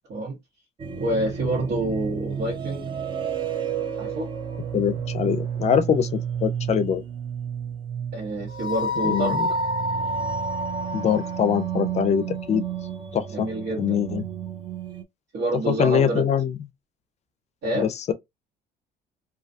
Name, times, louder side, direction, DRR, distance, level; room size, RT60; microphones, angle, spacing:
sound 1, 0.8-15.0, right 4 dB, 30° right, 0.4 m, -30 dB
voice 1, 1.0-2.9 4.0-4.3 8.1-9.4 13.3-14.0 15.3-16.3 17.6-17.9, right 1 dB, 75° right, 1.1 m, -27 dB
voice 2, 4.7-6.1 6.4-7.0 9.0-9.5 10.9-12.6 13.1-13.5 13.8-14.2 15.7-16.5 17.7-18.1, left 8 dB, 40° left, 0.4 m, -23 dB
2.3 x 2.2 x 2.5 m
cardioid pair, 110°, 17 cm